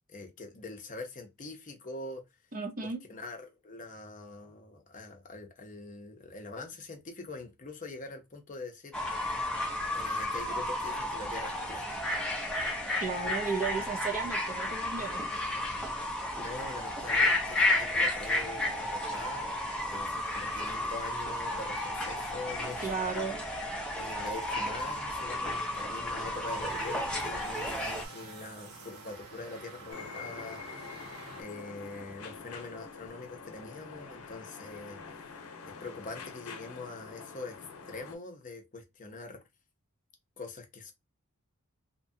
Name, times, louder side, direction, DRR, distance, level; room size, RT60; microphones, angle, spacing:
voice 1, 0.1-2.2 2.8-9.0 9.9-12.0 16.4-19.6 19.9-22.9 23.9-30.9 31.4-35.4 35.7-39.4 40.4-40.9, left 3 dB, 35° left, 0.7 m, -44 dB
voice 2, 2.5-3.0 13.0-15.3 22.8-23.4, right 4 dB, 40° right, 0.7 m, -34 dB
Fowl / Bird, 8.9-28.0, left 1 dB, 5° left, 0.6 m, -32 dB
sound 1, 26.1-31.4, right 2 dB, 85° right, 0.9 m, -48 dB
sound 2, 29.9-38.2, left 5 dB, 80° left, 0.8 m, -46 dB
2.8 x 2.3 x 2.7 m
head